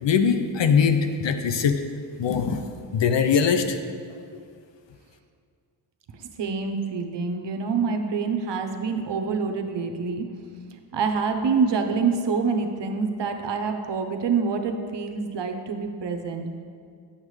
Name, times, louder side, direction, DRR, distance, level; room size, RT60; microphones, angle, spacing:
voice 1, 0.0-1.8 2.2-2.6 2.9-3.8 4.1-4.2, left 6 dB, 60° left, 8 dB, 0.7 m, -21 dB
voice 2, 6.1-10.3 10.9-16.5, right 5 dB, 55° right, 6 dB, 0.9 m, -26 dB
8.7 x 7.3 x 3.2 m, 2.2 s
cardioid pair, 50°, 49 cm